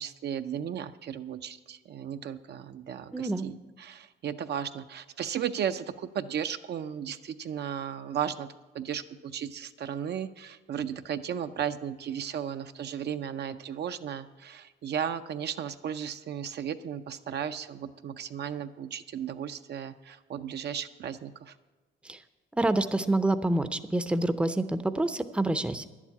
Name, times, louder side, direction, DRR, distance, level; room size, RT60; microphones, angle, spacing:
voice 1, 0.0-21.5, right 8 dB, 55° right, 9 dB, 0.5 m, -35 dB
voice 2, 3.1-3.5 22.0-22.2 22.5-25.8, right 2 dB, 5° right, 11 dB, 0.5 m, -27 dB
11.0 x 7.3 x 8.3 m, 1.2 s
cardioid pair, 90°, 20 cm